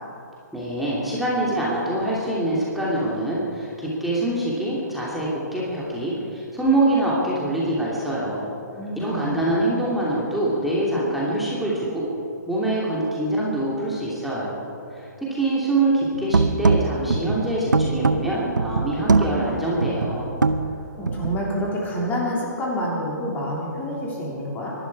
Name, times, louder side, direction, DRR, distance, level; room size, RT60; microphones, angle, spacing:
voice 1, 0.5-8.5 9.0-12.1 12.5-20.3, right 1 dB, ahead, -7 dB, 3.0 m, -24 dB
voice 2, 8.7-9.5 21.0-24.7, equal, 15° left, -3 dB, 3.2 m, -28 dB
sound 1, 16.1-21.5, right 3 dB, 90° right, 0.8 m, -22 dB
24.5 x 12.0 x 4.9 m, 2.7 s
hypercardioid pair, 140°, 10 cm